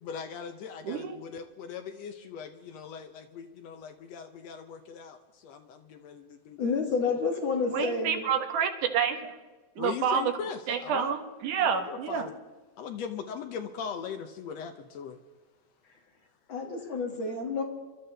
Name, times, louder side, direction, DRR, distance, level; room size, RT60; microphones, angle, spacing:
voice 1, 0.0-7.2 9.8-11.1 11.6-12.3 12.8-15.2, left 7 dB, 70° left, 7 dB, 1.7 m, -40 dB
voice 2, 0.8-1.2 7.7-9.2 9.8-10.3 10.7-12.3, right 7 dB, 85° right, 6 dB, 2.7 m, -28 dB
voice 3, 6.6-8.2 16.5-17.6, left 4 dB, 50° left, 2 dB, 1.9 m, -29 dB
28.0 x 13.0 x 3.3 m, 1.3 s
omnidirectional pair, 3.5 m